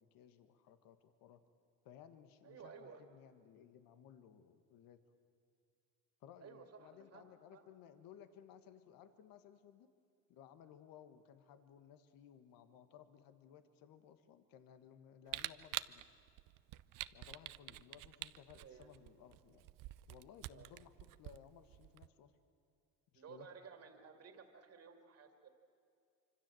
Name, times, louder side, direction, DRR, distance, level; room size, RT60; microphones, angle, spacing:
voice 1, 0.0-1.4 1.8-5.0 6.2-9.9 10.3-16.0 17.1-19.6 20.1-20.9 21.2-22.3 23.1-23.5, left 9 dB, 80° left, 9 dB, 1.6 m, -59 dB
voice 2, 2.4-3.0 6.4-7.7 18.5-18.9 20.5-20.7 23.1-25.5, right 6 dB, 45° right, 5 dB, 2.5 m, -56 dB
Camera, 15.3-22.1, right 16 dB, 70° right, 0.7 m, -47 dB
25.5 x 25.5 x 7.8 m, 2.4 s
cardioid pair, 100°, 34 cm